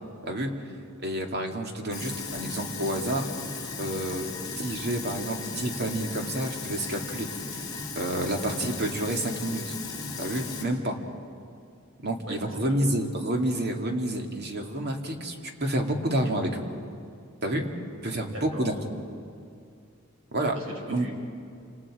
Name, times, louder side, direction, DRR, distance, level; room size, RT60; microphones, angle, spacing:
voice 1, 1.0-3.3 3.8-4.3 4.6-7.3 8.0-9.7 10.2-11.0 12.0-16.6 17.4-17.6 18.0-18.7 20.3-20.6 20.9-21.1, right 1 dB, 50° right, 3 dB, 2.5 m, -29 dB
Sink (filling or washing), 1.9-10.6, left 4 dB, 20° left, 3.9 m, -36 dB
voice 2, 12.3-13.0 18.3-18.7 20.5-21.1, equal, 75° right, 1 dB, 5.3 m, -40 dB
28.5 x 27.5 x 5.0 m, 2.5 s
head